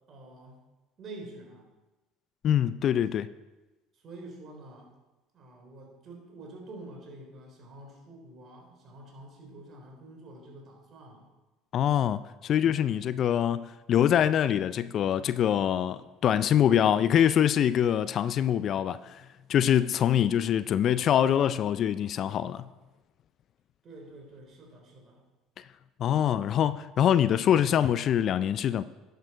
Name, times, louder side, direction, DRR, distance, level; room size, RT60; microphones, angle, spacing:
voice 1, 0.1-0.6 1.0-1.7 3.9-4.9 5.3-11.3 23.8-25.2, right 2 dB, 45° right, 3.6 m, -47 dB
voice 2, 2.4-3.3 11.7-22.6 25.6-25.7 26.0-28.8, left 10 dB, 50° left, 0.4 m, -24 dB
10.5 x 6.7 x 4.9 m
hypercardioid pair, 75°, 0 cm